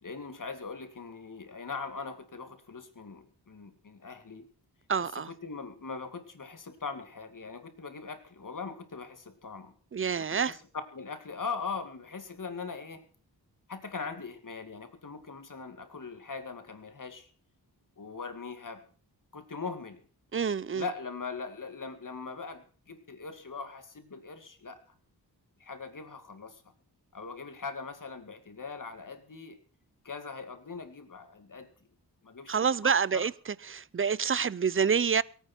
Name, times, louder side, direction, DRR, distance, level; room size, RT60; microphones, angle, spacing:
voice 1, 0.0-4.5 5.1-9.7 10.3-10.6 10.9-13.0 13.7-17.3 18.0-18.8 19.3-20.0 20.7-24.8 25.6-26.6 27.1-29.6 30.0-31.7 32.2-33.3, left 4 dB, 50° left, 2.3 m, -41 dB
voice 2, 4.9-5.3 9.9-10.6 20.3-20.9 32.5-35.2, right 6 dB, 30° right, 0.5 m, -27 dB
22.5 x 9.3 x 4.5 m
cardioid pair, 65°, 41 cm